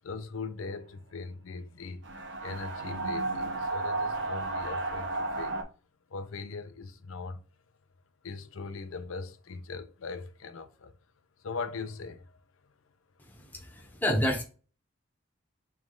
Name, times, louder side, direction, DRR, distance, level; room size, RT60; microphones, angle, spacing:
voice 1, 0.0-2.1 2.4-5.6 6.1-7.4 8.2-10.9 11.4-12.3, left 4 dB, 75° left, 0.5 m, -40 dB
sound 1, 2.0-5.6, right 2 dB, 60° right, 0.7 m, -33 dB
voice 2, 13.3-14.4, equal, 10° left, 0.7 m, -29 dB
3.3 x 3.1 x 3.7 m
head